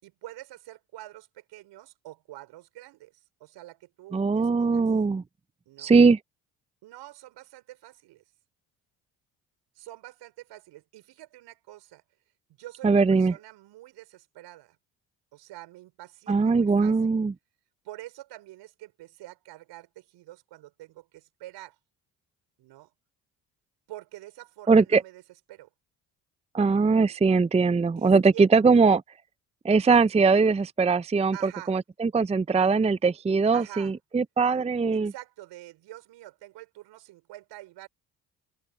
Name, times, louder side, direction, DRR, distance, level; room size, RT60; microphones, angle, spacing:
voice 1, 0.0-4.8 5.7-5.9 6.8-8.2 9.8-12.0 12.6-14.8 15.3-17.2 17.8-21.8 22.6-22.9 23.9-25.2 25.5-25.7 28.0-28.8 31.3-31.8 33.5-33.9 34.9-37.9, right 16 dB, 70° right, 5.4 m, -46 dB
voice 2, 4.1-5.2 5.8-6.2 12.8-13.3 16.3-17.3 24.7-25.0 26.5-29.0 29.6-35.1, right 4 dB, 15° right, 0.6 m, -21 dB
hypercardioid pair, 55°, 43 cm